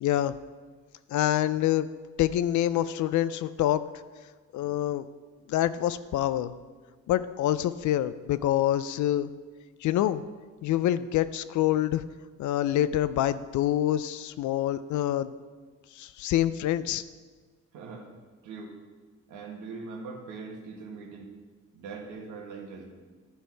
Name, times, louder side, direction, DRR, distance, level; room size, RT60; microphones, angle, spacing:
voice 1, 0.0-0.4 1.1-1.9 2.2-3.8 4.5-5.0 5.5-6.5 7.1-9.3 9.8-10.2 10.6-12.0 12.4-15.3 16.0-17.0, left 12 dB, 75° left, 14 dB, 0.5 m, -26 dB
voice 2, 17.7-18.1 18.4-18.7 19.3-21.3 21.7-22.9, right 4 dB, 90° right, 1 dB, 1.6 m, -41 dB
11.5 x 6.2 x 4.6 m, 1.4 s
cardioid pair, 90°, 30 cm